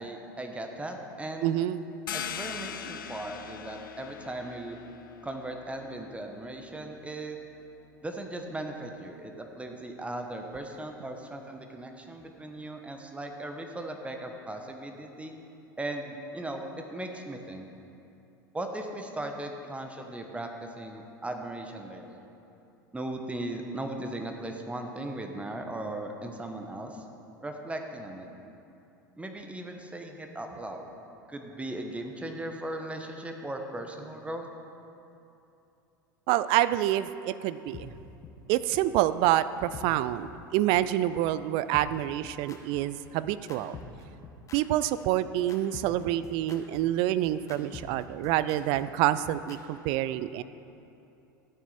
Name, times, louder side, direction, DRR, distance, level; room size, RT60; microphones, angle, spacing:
voice 1, 0.0-1.6 2.1-4.8 5.2-7.4 8.0-15.3 15.8-17.7 18.5-22.2 22.9-27.0 27.4-28.3 29.2-30.9 31.3-34.5, right 1 dB, 10° right, 4 dB, 1.1 m, -38 dB
voice 2, 1.4-1.8 36.3-37.9 38.5-43.8 44.5-50.4, right 13 dB, 50° right, 15 dB, 0.4 m, -27 dB
sound 1, 2.1-7.4, left 8 dB, 75° left, 0.5 m, -41 dB
sound 2, 37.7-37.8 38.2-38.3 38.7-38.8 39.2-39.3 39.7-39.8 40.2-40.3 40.7-40.8 41.2-41.3 41.7-49.6, left 6 dB, 30° left, 1.3 m, -45 dB
13.0 x 9.1 x 4.3 m, 2.8 s
figure-of-eight pair, 80°, 11 cm